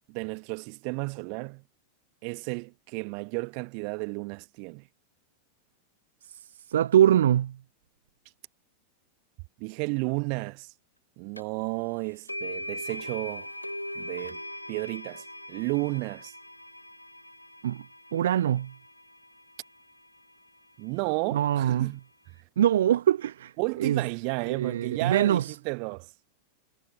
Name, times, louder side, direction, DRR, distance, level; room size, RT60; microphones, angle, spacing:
voice 1, 0.1-1.6 2.2-4.8 9.6-10.7 11.2-13.5 14.0-14.4 14.7-16.3 20.8-22.0 23.6-26.1, right 40 dB or more, 45° right, 2.5 m, -32 dB
voice 2, 6.7-7.6 17.6-17.8 18.1-18.7 21.3-21.9 22.6-23.5 23.8-24.0 24.5-25.6, right 11 dB, 60° right, 0.8 m, -23 dB
sound 1, 11.4-11.5 12.3-20.3, left 1 dB, 90° left, 5.3 m, -41 dB
figure-of-eight pair, 90°, 0 cm